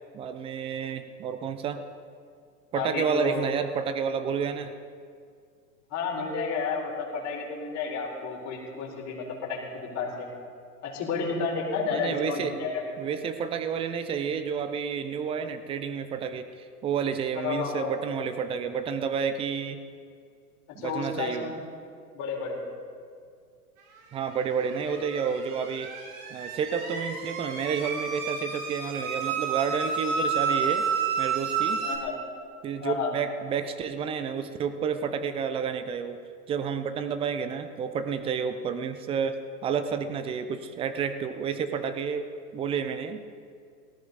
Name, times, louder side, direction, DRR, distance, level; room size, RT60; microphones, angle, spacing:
voice 1, 0.1-1.8 2.7-4.7 11.9-12.5 13.0-19.8 20.7-21.5 24.1-25.9 26.3-30.9 31.2-31.8 32.6-36.2 36.5-43.2, right 6 dB, 15° right, 10 dB, 0.4 m, -30 dB
voice 2, 2.7-3.5 5.9-10.3 10.8-12.8 17.3-17.9 20.7-21.6 22.1-22.6 24.8-25.0 31.8-32.2 32.8-33.1, left 5 dB, 35° left, -2 dB, 4.5 m, -31 dB
sound 1, 24.4-32.0, right 6 dB, 55° right, 3.4 m, -30 dB
18.0 x 15.0 x 4.1 m, 2.2 s
hypercardioid pair, 105°, 48 cm